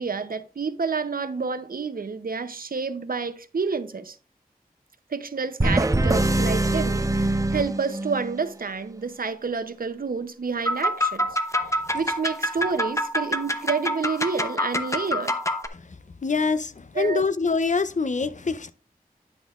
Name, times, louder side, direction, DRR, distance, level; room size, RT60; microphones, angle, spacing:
voice 1, 0.0-4.2 5.1-11.3 11.6-15.4 16.9-17.2, right 5 dB, 70° right, 0.6 m, -29 dB
sound 1, 5.6-8.4, right 2 dB, 20° right, 0.6 m, -23 dB
sound 2, 10.7-15.7, left 1 dB, 20° left, 0.8 m, -26 dB
voice 2, 16.2-18.7, left 4 dB, 55° left, 0.5 m, -25 dB
9.9 x 6.2 x 2.4 m
wide cardioid pair, 60°, 16 cm